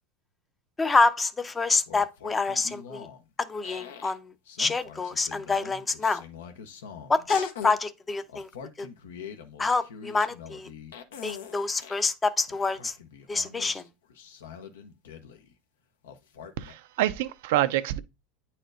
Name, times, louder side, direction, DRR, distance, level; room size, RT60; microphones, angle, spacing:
voice 1, 0.8-3.1 3.4-4.3 4.6-6.2 7.1-8.5 8.8-8.9 9.6-10.7 11.2-12.9 13.3-13.8, left 3 dB, 15° left, 0.5 m, -27 dB
sound 1, 1.6-3.2 3.6-4.2 4.5-7.8 8.3-12.0 12.5-15.5 16.0-16.7, left 7 dB, 90° left, 0.8 m, -43 dB
voice 2, 16.6-18.0, right 14 dB, 75° right, 0.4 m, -26 dB
9.1 x 4.3 x 2.5 m
supercardioid pair, 120°, 0 cm